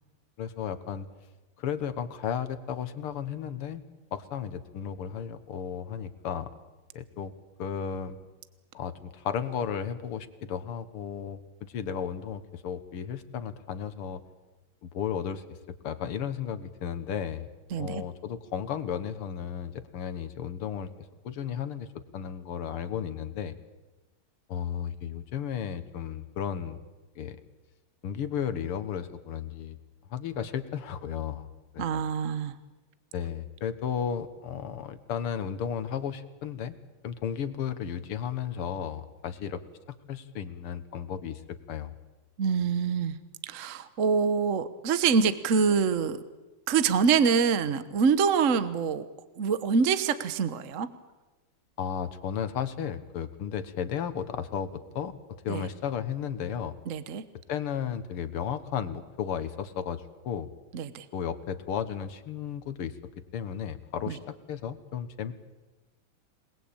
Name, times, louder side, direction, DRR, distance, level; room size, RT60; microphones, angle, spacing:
voice 1, 0.4-1.1 1.6-3.8 4.1-6.5 6.9-7.3 7.6-8.2 8.7-11.4 11.7-14.2 14.8-15.4 15.8-17.5 17.8-20.9 21.2-21.9 22.1-23.5 24.5-26.8 27.2-27.4 28.0-29.8 30.1-31.5 31.7-32.0 33.1-36.8 37.0-39.6 40.1-41.4 41.7-41.9 51.8-55.1 55.4-56.7 57.5-60.5 61.1-62.9 63.3-65.3, left 8 dB, 85° left, 11 dB, 2.3 m, -34 dB
voice 2, 17.7-18.0 31.8-32.5 42.4-43.2 43.4-46.2 46.7-49.1 49.4-50.9 55.5-55.7 56.9-57.2 60.7-61.0 64.1-64.2, right 6 dB, 45° right, 12 dB, 1.2 m, -25 dB
27.0 x 20.0 x 8.8 m, 1.1 s
omnidirectional pair, 2.4 m